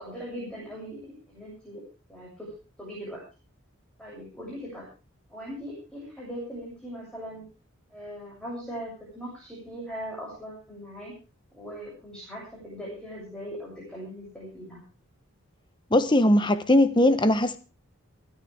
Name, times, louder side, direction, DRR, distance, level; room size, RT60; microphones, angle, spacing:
voice 1, 0.0-1.8 2.1-2.5 2.8-3.2 4.0-4.9 5.3-7.4 7.9-11.1 11.5-14.8, equal, 5° left, 7.7 m, -40 dB
voice 2, 15.9-17.6, left 1 dB, 20° left, 1.1 m, -20 dB
28.5 x 10.0 x 3.6 m
head